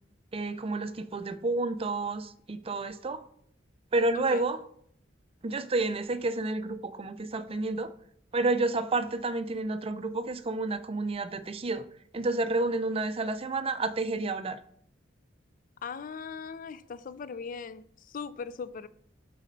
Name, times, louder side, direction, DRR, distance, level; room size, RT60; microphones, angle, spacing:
voice 1, 0.3-3.2 3.9-4.6 5.4-7.9 8.3-11.8 12.1-14.6, right 2 dB, 30° right, 0.5 m, -30 dB
voice 2, 4.1-4.4 15.8-18.9, left 5 dB, 45° left, 0.4 m, -39 dB
8.1 x 4.1 x 5.3 m
head